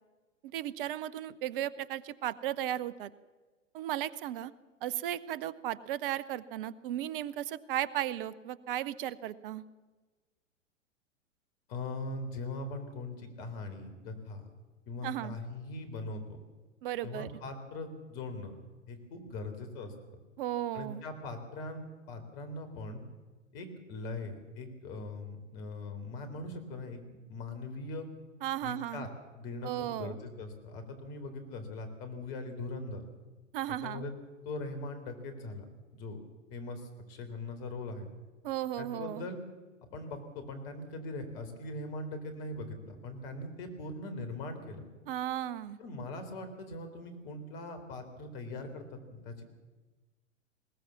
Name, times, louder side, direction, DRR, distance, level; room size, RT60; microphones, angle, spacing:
voice 1, 0.4-3.1 3.7-4.5 4.8-9.6 15.0-15.4 16.8-17.3 20.4-21.0 28.4-29.1 29.6-30.2 33.5-34.0 38.4-39.3 45.1-45.8, right 12 dB, 45° right, 19 dB, 0.9 m, -35 dB
voice 2, 11.7-14.5 14.9-16.2 17.0-18.6 18.9-19.9 20.7-23.0 23.5-28.1 28.6-29.1 29.3-33.0 33.8-34.1 34.4-35.7 35.9-36.2 36.5-38.1 38.8-39.4 39.9-44.8 45.8-49.4, left 2 dB, 45° left, 7 dB, 4.2 m, -41 dB
21.0 x 18.5 x 7.2 m, 1.3 s
figure-of-eight pair, 100°, 39 cm